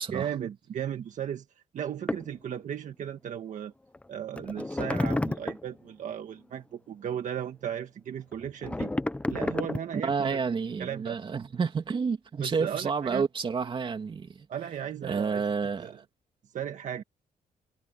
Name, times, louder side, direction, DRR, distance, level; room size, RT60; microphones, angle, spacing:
voice 1, 0.1-1.4 1.7-3.7 4.1-8.9 9.3-10.4 10.8-11.2 12.4-13.2 14.5-15.4 15.8-16.0 16.5-17.0, right 9 dB, 60° right, 1.6 m, -35 dB
sound 1, 2.1-2.3 3.9-4.0 4.4-5.7 8.3-10.1, left 2 dB, 10° left, 0.6 m, -31 dB
voice 2, 10.0-14.5 15.0-16.0, right 5 dB, 35° right, 2.8 m, -30 dB
cardioid pair, 145°, 15 cm